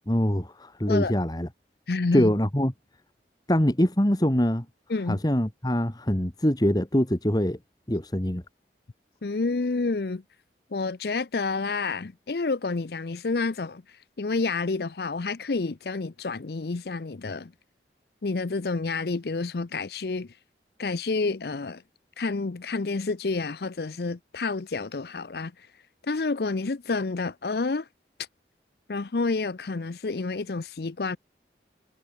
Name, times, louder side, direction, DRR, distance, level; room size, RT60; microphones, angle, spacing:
voice 1, 0.0-1.5 2.1-2.7 3.5-4.7 5.1-7.6 7.9-8.4, equal, 20° left, 1.9 m, -24 dB
voice 2, 1.9-2.3 4.9-5.2 9.2-10.2 10.7-13.8 14.2-17.5 18.2-20.3 20.8-21.8 22.2-25.7 26.0-27.9 28.9-31.2, left 3 dB, 60° left, 0.6 m, -29 dB
head